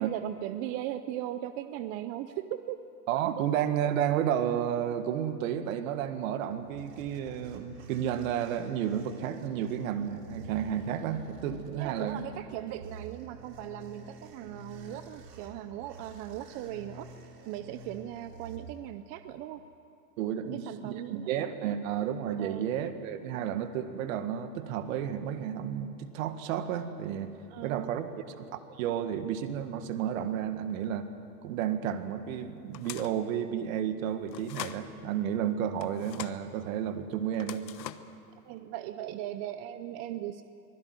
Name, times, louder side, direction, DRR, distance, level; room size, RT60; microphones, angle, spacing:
voice 1, 0.0-2.8 3.4-3.5 11.8-17.1 17.4-19.6 20.4-21.8 22.4-22.7 27.5-27.9 38.5-40.4, right 12 dB, 30° right, 11 dB, 0.6 m, -38 dB
voice 2, 3.1-12.2 20.2-27.3 27.6-28.1 28.4-31.1 31.4-37.7, right 9 dB, 55° right, 9 dB, 1.9 m, -32 dB
sound 1, 6.3-19.2, right 3 dB, 75° right, 3.9 m, -49 dB
sound 2, 32.7-33.2 34.3-34.8 35.8-36.4 37.3-38.2, left 11 dB, 85° left, 1.3 m, -42 dB
24.5 x 16.5 x 9.7 m, 2.6 s
hypercardioid pair, 135°, 49 cm